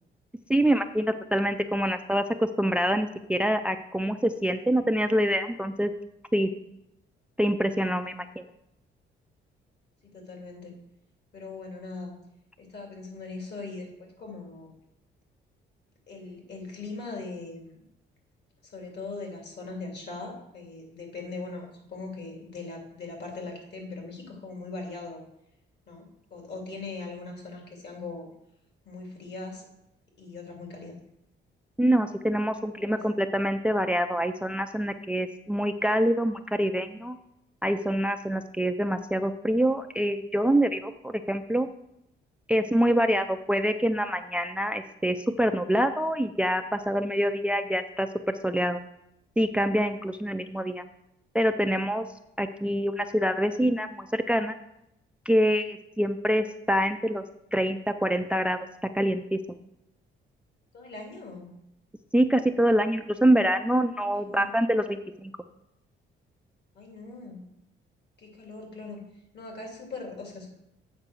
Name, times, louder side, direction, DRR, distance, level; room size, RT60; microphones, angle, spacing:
voice 1, 0.5-5.9 6.3-6.5 7.4-8.4 31.8-37.2 37.6-41.7 42.5-48.8 49.4-50.8 51.3-52.1 52.4-54.6 55.3-57.2 57.5-58.6 58.9-59.6 62.1-65.3, equal, 5° right, 9 dB, 0.4 m, -25 dB
voice 2, 10.0-10.7 11.3-12.1 12.6-14.7 16.1-17.8 18.6-25.2 25.9-28.3 28.8-29.6 30.2-31.0 32.8-32.9 60.7-61.5 64.1-64.6 66.7-67.4 68.2-69.0 69.3-70.5, left 3 dB, 60° left, 1 dB, 3.0 m, -40 dB
8.3 x 4.5 x 6.7 m, 0.83 s
cardioid pair, 90°, 20 cm